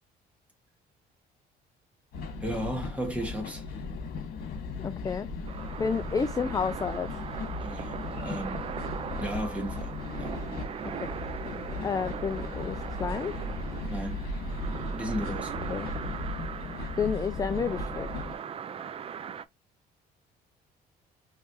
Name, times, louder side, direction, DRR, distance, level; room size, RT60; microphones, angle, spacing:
sound 1, 2.1-18.4, left 3 dB, 60° left, 1.8 m, -37 dB
voice 1, 2.4-3.6 7.6-8.7 9.2-10.4 13.9-14.3 14.9-15.5, equal, 10° right, 1.9 m, -35 dB
voice 2, 4.8-5.3 5.8-7.2 10.8-11.2 11.8-13.4 15.7-15.9 17.0-18.1, left 6 dB, 20° left, 0.4 m, -30 dB
sound 2, 5.5-19.5, right 7 dB, 35° right, 0.4 m, -39 dB
4.8 x 3.2 x 3.0 m
cardioid pair, 110°, 17 cm